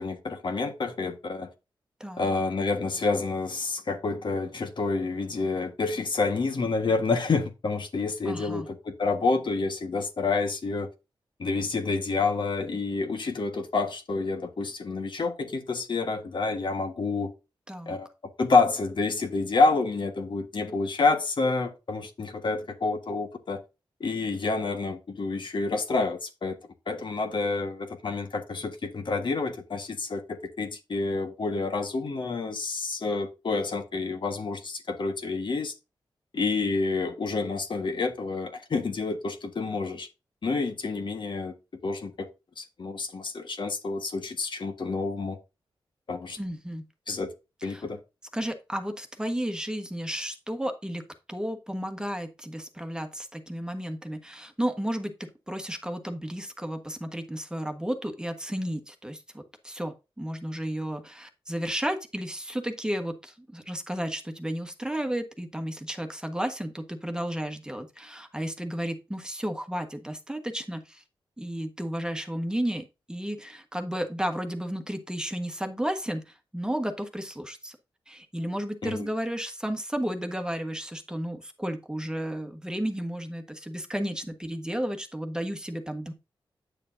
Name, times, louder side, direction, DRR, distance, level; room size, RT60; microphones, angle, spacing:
voice 1, 0.0-1.5 2.2-10.9 11.4-17.3 17.9-18.1 18.4-23.6 24.0-26.6 26.9-35.7 36.3-40.1 40.4-41.5 41.8-42.3 42.6-45.4 46.1-46.4 47.1-47.3 47.6-48.0 78.8-79.1, left 3 dB, 60° left, 1.4 m, -28 dB
voice 2, 2.0-2.3 8.2-8.7 17.7-18.0 46.4-46.8 47.7-47.8 48.3-71.0 71.4-77.8 78.1-86.1, equal, 10° right, 1.3 m, -33 dB
9.1 x 6.8 x 2.6 m
wide cardioid pair, 80°, 9 cm